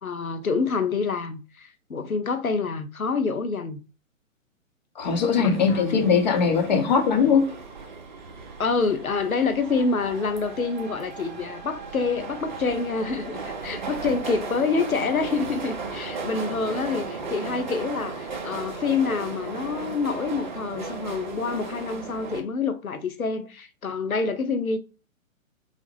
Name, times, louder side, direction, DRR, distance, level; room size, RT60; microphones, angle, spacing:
voice 1, 0.0-3.8 5.4-6.1 8.6-24.8, left 4 dB, 90° left, 0.6 m, -27 dB
voice 2, 5.0-7.5, left 6 dB, 35° left, 0.7 m, -20 dB
sound 1, 5.0-22.4, right 4 dB, 35° right, 0.5 m, -36 dB
3.9 x 2.0 x 3.1 m
figure-of-eight pair, 125°, 41 cm